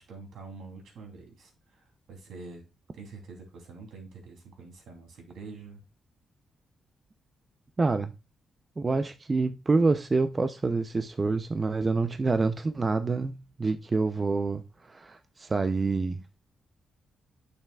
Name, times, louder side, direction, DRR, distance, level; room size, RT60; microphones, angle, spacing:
voice 1, 0.0-2.6 2.9-5.8, right 4 dB, 80° right, 3.1 m, -46 dB
voice 2, 7.8-8.1 8.8-16.2, right 3 dB, 30° right, 0.6 m, -27 dB
9.3 x 6.7 x 2.4 m
cardioid pair, 90°, 0 cm